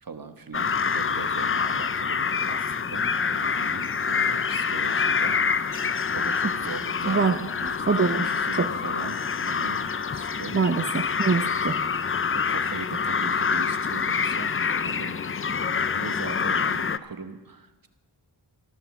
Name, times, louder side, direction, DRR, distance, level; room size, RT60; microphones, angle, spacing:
voice 1, 0.0-10.6 12.3-14.5 14.8-15.2 15.4-17.9, right 4 dB, 50° right, 8 dB, 1.2 m, -40 dB
sound 1, 0.5-17.0, left 6 dB, 30° left, 0.4 m, -26 dB
voice 2, 7.1-7.4 7.9-8.7 10.5-11.8, right 5 dB, 30° right, 6 dB, 0.7 m, -24 dB
13.0 x 12.5 x 7.2 m, 1.2 s
wide cardioid pair, 80°, 44 cm